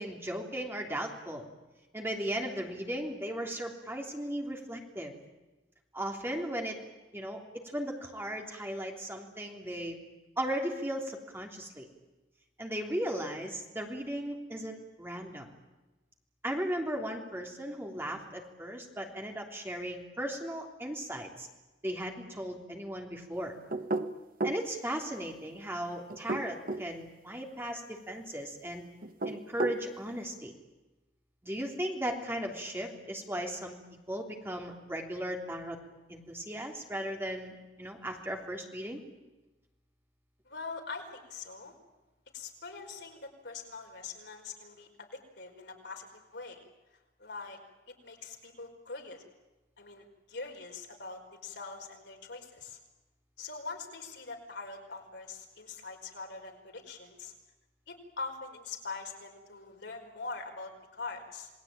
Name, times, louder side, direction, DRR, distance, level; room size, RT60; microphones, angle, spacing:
voice 1, 0.0-1.5 1.9-5.1 5.9-6.8 7.1-10.0 10.4-11.9 12.6-15.5 16.4-21.5 21.8-23.5 24.4-28.8 29.2-30.5 31.4-33.8 34.1-35.8 36.1-39.0, equal, 15° right, 1 dB, 3.3 m, -36 dB
sound 1, 23.7-24.7 26.1-26.9 29.0-29.8, right 2 dB, 50° right, 1.3 m, -32 dB
voice 2, 40.5-41.7 42.3-46.6 47.2-47.6 47.9-49.2 49.8-52.8 53.4-57.3 57.9-61.5, left 4 dB, 75° left, 2 dB, 5.1 m, -43 dB
28.0 x 20.5 x 9.0 m, 1.1 s
head